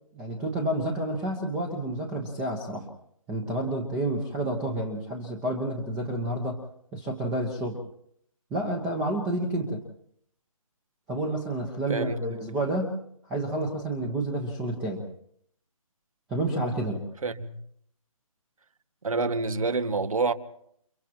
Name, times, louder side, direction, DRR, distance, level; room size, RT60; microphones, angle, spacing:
voice 1, 0.1-2.9 3.3-6.6 6.9-7.8 8.5-9.8 11.1-13.0 13.3-15.0 16.3-17.0, right 1 dB, 5° right, 1.1 m, -29 dB
voice 2, 11.9-12.3 17.2-17.6 19.0-20.3, right 3 dB, 70° right, 1.9 m, -27 dB
30.0 x 30.0 x 3.0 m
hypercardioid pair, 170°, 18 cm